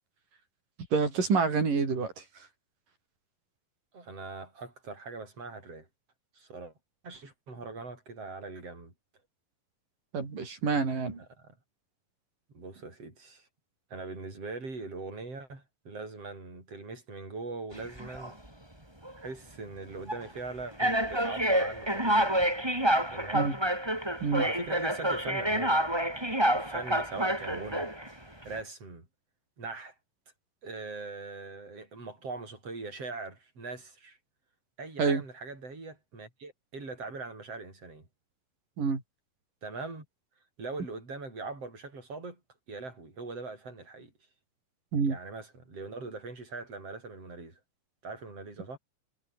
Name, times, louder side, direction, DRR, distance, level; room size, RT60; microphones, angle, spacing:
voice 1, 0.9-2.1 10.1-11.2 23.3-23.6 24.2-24.5 35.0-35.2 38.8-39.0 44.9-45.2, right 5 dB, 80° right, 7.2 m, -27 dB
voice 2, 3.9-5.9 6.3-6.7 7.0-8.9 11.4-11.6 12.5-13.5 13.9-18.4 19.2-22.4 23.1-23.6 24.4-26.1 26.4-27.9 28.4-29.1 29.6-30.0 30.6-34.2 34.8-38.1 39.6-40.1 40.6-42.4 42.7-44.1 45.0-47.6 48.0-48.8, right 3 dB, 45° right, 9.1 m, -41 dB
sound 1, 17.8-18.3 19.0-19.2 20.1-20.2 20.8-28.1, right 1 dB, 5° right, 6.0 m, -28 dB
omnidirectional pair, 3.8 m